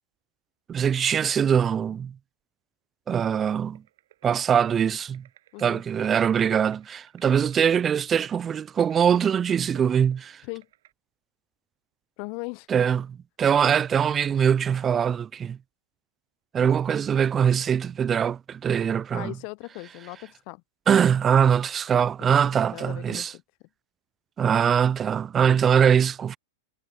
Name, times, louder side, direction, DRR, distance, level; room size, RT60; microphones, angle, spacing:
voice 1, 0.7-2.1 3.1-3.8 4.2-5.2 5.6-10.4 12.7-15.6 16.5-19.3 20.9-23.3 24.4-26.4, right 8 dB, 25° right, 0.4 m, -22 dB
Ant running, 3.7-10.9, right 13 dB, 65° right, 7.4 m, -59 dB
voice 2, 12.2-12.7 19.1-20.6 22.2-23.4, left 34 dB, 50° left, 0.4 m, -38 dB
hypercardioid pair, 110°, 0 cm